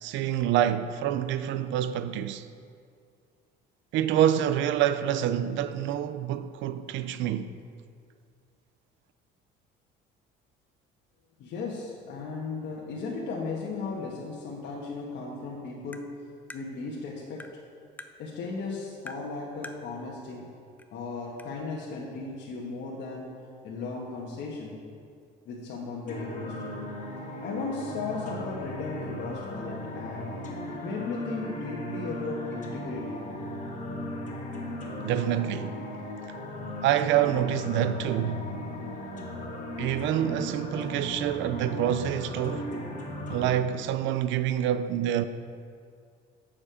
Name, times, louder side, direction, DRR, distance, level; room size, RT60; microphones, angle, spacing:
voice 1, 0.0-2.5 3.9-7.5 35.0-35.8 36.8-38.5 39.8-42.7 43.3-45.3, right 10 dB, 70° right, 0.5 m, -27 dB
voice 2, 11.4-16.2 16.5-17.6 18.2-20.6 20.9-23.3 23.6-24.8 25.4-26.9 27.4-33.2, left 4 dB, 65° left, 1.3 m, -36 dB
Tap, 15.9-16.1 16.5-16.6 17.4-17.6 18.0-18.1 19.1-19.3 19.6-19.8 20.8-20.9 21.4-21.5, left 2 dB, 10° left, 0.4 m, -43 dB
sound 1, 26.1-43.5, left 1 dB, 40° left, 1.8 m, -37 dB
7.5 x 6.8 x 5.0 m
cardioid pair, 95°, 20 cm